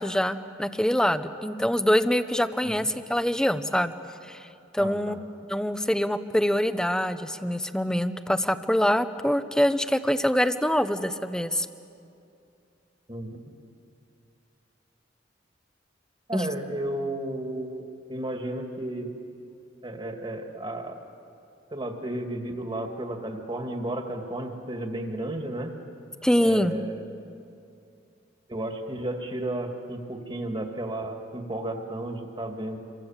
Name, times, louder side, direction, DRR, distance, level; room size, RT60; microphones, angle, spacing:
voice 1, 0.0-3.9 4.3-4.4 4.7-5.2 5.5-11.7 16.3-16.5 26.2-26.8, equal, 5° left, 11 dB, 0.8 m, -24 dB
voice 2, 4.8-5.2 13.1-13.4 16.3-17.8 18.1-19.1 19.8-20.9 21.7-25.7 26.4-27.0 28.5-32.8, right 1 dB, 25° right, 4 dB, 2.2 m, -33 dB
28.0 x 23.5 x 7.3 m, 2.6 s
head